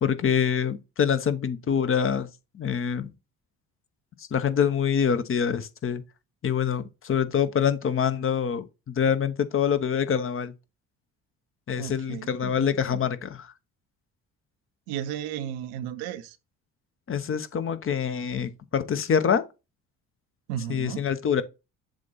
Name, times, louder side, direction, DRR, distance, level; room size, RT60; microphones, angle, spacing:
voice 1, 0.0-2.3 2.5-3.1 4.2-6.0 6.4-10.5 11.7-13.5 17.1-19.4 20.7-21.4, left 7 dB, 40° left, 1.0 m, -25 dB
voice 2, 11.8-13.0 14.9-16.4 20.5-21.1, right 10 dB, 85° right, 0.9 m, -34 dB
7.4 x 2.5 x 5.7 m
hypercardioid pair, 60°, 32 cm